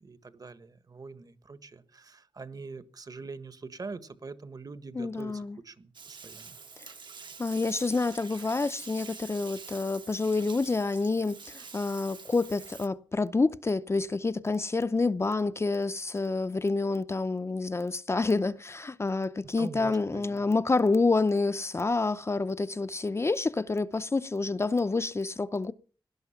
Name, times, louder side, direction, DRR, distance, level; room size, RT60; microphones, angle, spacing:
voice 1, 0.0-6.6 19.6-20.4, right 4 dB, 50° right, 1.4 m, -44 dB
voice 2, 4.9-5.6 7.4-25.7, left 3 dB, 30° left, 0.6 m, -28 dB
Bathtub (filling or washing), 5.9-12.9, right 5 dB, 65° right, 1.5 m, -46 dB
18.0 x 12.0 x 5.8 m
wide cardioid pair, 115°, 8 cm